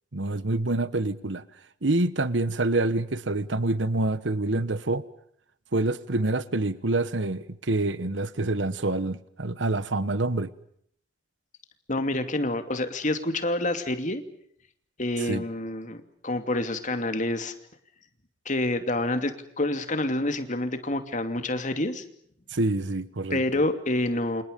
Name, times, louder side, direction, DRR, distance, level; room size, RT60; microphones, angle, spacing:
voice 1, 0.1-1.4 1.8-5.0 5.7-10.5 15.2-15.4 22.5-23.4, right 2 dB, 85° right, 15 dB, 1.2 m, -26 dB
voice 2, 11.9-14.2 15.0-17.5 18.5-22.0 23.3-24.4, left 1 dB, 45° left, 8 dB, 2.7 m, -28 dB
29.0 x 27.5 x 5.3 m, 0.66 s
head